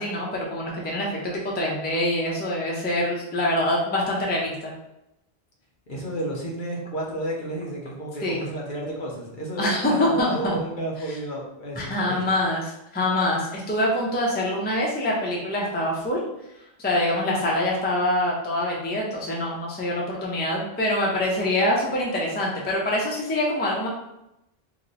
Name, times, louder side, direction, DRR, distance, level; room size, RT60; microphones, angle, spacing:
voice 1, 0.0-4.7 8.2-8.4 9.6-10.6 11.8-16.2 16.8-23.9, left 1 dB, 15° left, -3 dB, 0.4 m, -25 dB
voice 2, 5.9-12.3, right 1 dB, 55° left, -3 dB, 0.8 m, -32 dB
2.9 x 2.1 x 3.9 m, 0.87 s
omnidirectional pair, 1.0 m